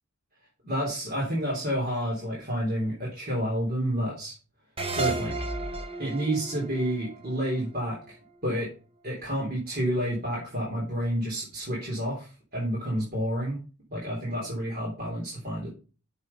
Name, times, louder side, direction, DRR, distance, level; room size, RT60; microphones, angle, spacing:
voice 1, 0.6-4.4 4.9-5.4 6.0-8.2 8.4-8.7 9.0-13.6 13.9-15.7, equal, 40° right, -4 dB, 3.5 m, -29 dB
sound 1, 4.8-8.1, right 3 dB, 25° right, 1.0 m, -33 dB
7.3 x 6.7 x 5.4 m, 0.35 s
head